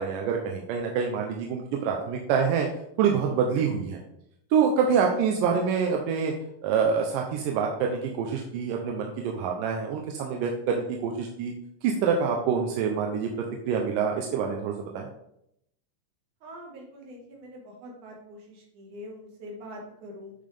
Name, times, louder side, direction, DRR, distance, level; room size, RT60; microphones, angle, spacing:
voice 1, 0.0-2.7 3.0-4.0 4.5-6.3 6.6-11.5 11.8-15.1, right 6 dB, 85° right, 1 dB, 2.3 m, -26 dB
voice 2, 16.4-20.3, equal, 65° right, 0 dB, 3.1 m, -44 dB
8.7 x 5.7 x 3.4 m, 0.76 s
omnidirectional pair, 3.9 m